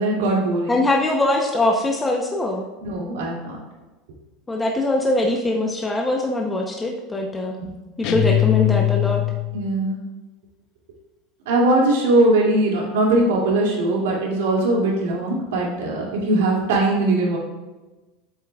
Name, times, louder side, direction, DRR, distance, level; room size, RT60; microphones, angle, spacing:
voice 1, 0.0-0.8 2.8-3.6 9.5-10.0 11.5-17.4, right 2 dB, 90° right, -3 dB, 2.6 m, -20 dB
voice 2, 0.7-2.7 4.5-7.6 8.0-9.2, left 2 dB, 10° left, 0 dB, 0.8 m, -22 dB
sound 1, 8.0-9.7, left 15 dB, 55° left, 0.7 m, -21 dB
8.8 x 7.3 x 2.4 m, 1.2 s
supercardioid pair, 130°, 0 cm